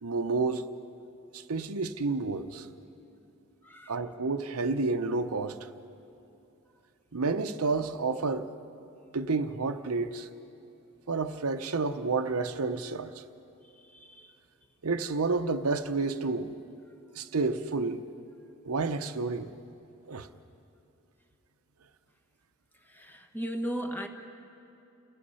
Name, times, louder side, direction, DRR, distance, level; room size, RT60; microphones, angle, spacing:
voice 1, 0.0-0.7 1.3-2.7 3.9-5.7 7.1-8.5 9.1-10.3 11.1-13.2 14.8-16.5 17.1-18.0 18.6-19.5 20.1-20.3, right 3 dB, 85° right, 0.8 m, -30 dB
voice 2, 3.6-4.0 13.9-14.3 22.9-24.1, equal, 10° left, 1.2 m, -36 dB
29.5 x 18.0 x 5.6 m
head